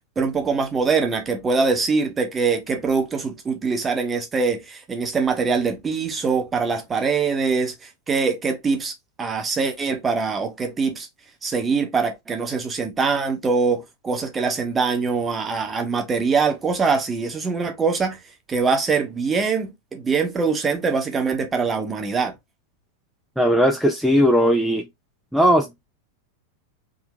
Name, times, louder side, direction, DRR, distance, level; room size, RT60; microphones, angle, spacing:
voice 1, 0.2-11.1 11.4-18.2 18.5-22.3, right 4 dB, 20° right, 1.2 m, -23 dB
voice 2, 23.4-24.8 25.3-25.7, equal, ahead, 0.6 m, -17 dB
3.8 x 3.4 x 3.2 m
figure-of-eight pair, 90°, 0 cm